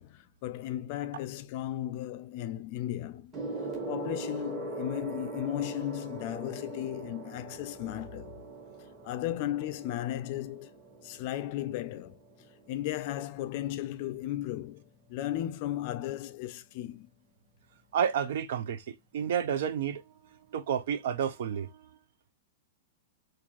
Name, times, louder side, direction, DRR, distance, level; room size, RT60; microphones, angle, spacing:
voice 1, 0.0-3.4 3.9-8.4 9.0-10.7 11.0-12.2 12.7-17.1, left 13 dB, 40° left, 0.4 m, -35 dB
Gong, 3.3-13.1 14.0-14.3, right 2 dB, 25° right, 1.5 m, -41 dB
voice 2, 17.9-20.0 20.5-22.0, right 8 dB, 65° right, 0.6 m, -30 dB
4.3 x 2.6 x 2.9 m
supercardioid pair, 155°, 0 cm